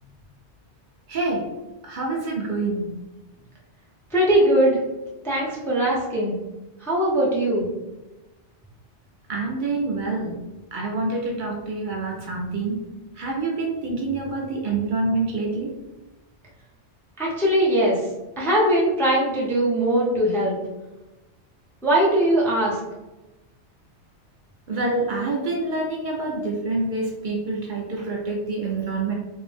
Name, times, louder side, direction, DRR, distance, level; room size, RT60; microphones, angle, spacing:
voice 1, 1.1-1.5 1.8-2.9 9.3-10.4 10.7-12.8 13.2-15.7 24.7-29.1, right 3 dB, 60° right, -1 dB, 0.5 m, -26 dB
voice 2, 4.1-4.8 5.2-6.3 6.8-7.7 17.2-18.1 18.4-20.6 21.8-22.8, right 1 dB, 5° left, -5 dB, 0.3 m, -20 dB
2.6 x 2.0 x 3.1 m, 1.1 s
omnidirectional pair, 1.2 m